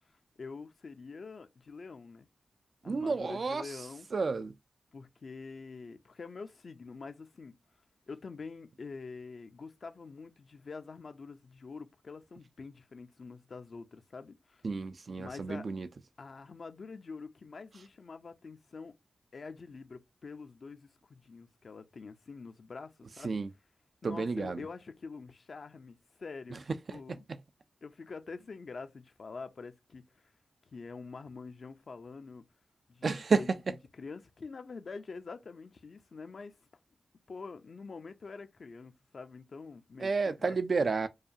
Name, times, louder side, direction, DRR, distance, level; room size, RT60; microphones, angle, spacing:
voice 1, 0.4-2.3 2.8-4.1 4.9-7.6 8.1-14.6 15.2-15.7 16.2-18.9 19.3-23.4 24.0-26.6 26.9-27.2 27.8-30.2 30.7-32.4 32.9-33.5 33.9-36.5 37.3-40.9, left 4 dB, 60° left, 0.6 m, -46 dB
voice 2, 2.9-3.6 4.1-4.5 14.6-15.9 23.2-23.5 24.0-24.6 33.0-33.4 40.0-41.1, right 4 dB, 60° right, 0.4 m, -30 dB
4.7 x 2.4 x 2.7 m
cardioid pair, 75°, 0 cm